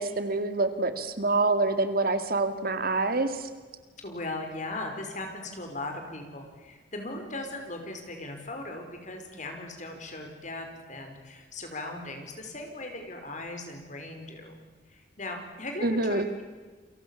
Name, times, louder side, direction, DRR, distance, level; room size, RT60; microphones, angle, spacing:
voice 1, 0.0-3.5 15.8-16.3, right 3 dB, 55° right, 10 dB, 2.1 m, -26 dB
voice 2, 4.0-14.5 14.9-16.4, left 2 dB, 45° left, 4 dB, 5.4 m, -38 dB
29.0 x 23.0 x 7.3 m, 1.4 s
head